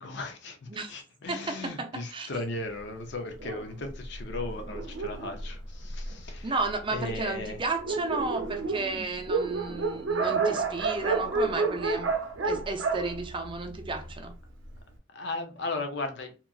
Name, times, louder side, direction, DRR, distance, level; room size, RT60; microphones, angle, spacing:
voice 1, 0.0-6.5 6.9-7.6 15.1-16.4, left 2 dB, 60° left, 0.6 m, -36 dB
voice 2, 1.3-2.3 6.4-12.2 12.4-14.3, right 3 dB, 25° right, 0.5 m, -33 dB
Dog, 3.4-6.4 7.1-7.2 7.5-7.6 7.8-14.2, right 4 dB, 85° right, 0.6 m, -30 dB
2.9 x 2.4 x 2.3 m
head